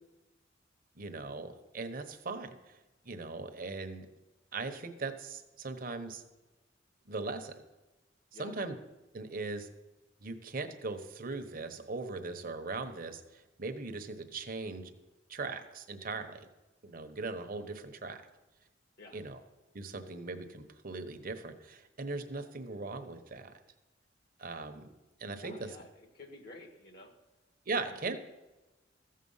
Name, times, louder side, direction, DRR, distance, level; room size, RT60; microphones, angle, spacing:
voice 1, 1.0-2.8 3.0-4.1 4.5-6.2 7.1-7.6 8.4-8.7 9.1-9.7 10.2-14.9 15.3-16.5 16.8-18.2 19.1-19.4 19.7-23.5 24.4-24.9 25.2-25.7 27.7-28.2, right 3 dB, 50° right, 7 dB, 1.0 m, -39 dB
voice 2, 25.4-27.1 27.7-28.0, left 2 dB, 55° left, 4 dB, 1.5 m, -52 dB
14.0 x 7.6 x 5.6 m, 1.1 s
head